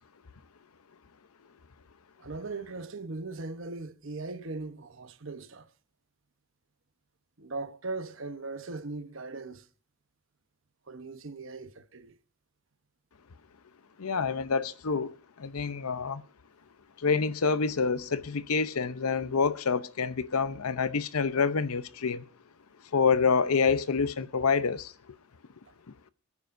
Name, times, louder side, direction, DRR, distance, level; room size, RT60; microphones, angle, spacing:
voice 1, 2.2-5.7 7.4-9.7 10.9-12.2, right 3 dB, 60° right, 1.0 m, -39 dB
voice 2, 14.0-16.2 17.0-22.2 22.9-24.9, left 5 dB, 85° left, 0.8 m, -27 dB
27.0 x 9.7 x 2.6 m
head